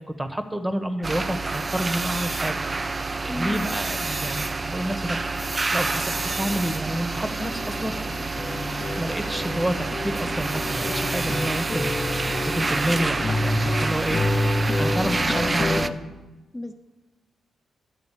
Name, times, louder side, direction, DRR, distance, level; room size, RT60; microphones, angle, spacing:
voice 1, 0.2-2.7 3.2-5.2 5.7-7.9 9.0-14.2 14.8-15.9, equal, 20° right, 8 dB, 1.0 m, -29 dB
sound 1, 1.0-15.9, right 3 dB, 35° right, 0.4 m, -28 dB
voice 2, 3.3-3.6 16.5-16.7, left 1 dB, 20° left, 5 dB, 0.6 m, -32 dB
sound 2, 6.4-6.6 6.8-15.9, left 1 dB, 45° left, 1.2 m, -28 dB
10.5 x 3.7 x 7.4 m, 1.1 s
supercardioid pair, 50°, 0 cm